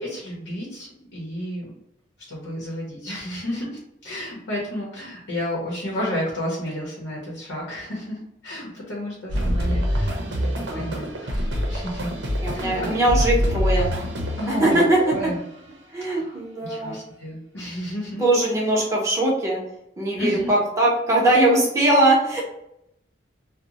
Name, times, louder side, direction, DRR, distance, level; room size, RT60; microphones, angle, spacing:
voice 1, 0.0-1.7 2.3-10.1 10.4-12.1 12.5-12.9 14.4-15.4 16.1-18.2 20.1-20.5, left 1 dB, 85° left, -4 dB, 0.8 m, -32 dB
sound 1, 9.3-15.4, equal, 85° right, 0.6 m, -25 dB
voice 2, 12.4-13.9 14.5-15.0 15.9-17.0 18.2-19.6 20.0-22.4, right 1 dB, 15° right, -4 dB, 0.7 m, -20 dB
2.6 x 2.1 x 2.9 m, 0.80 s
head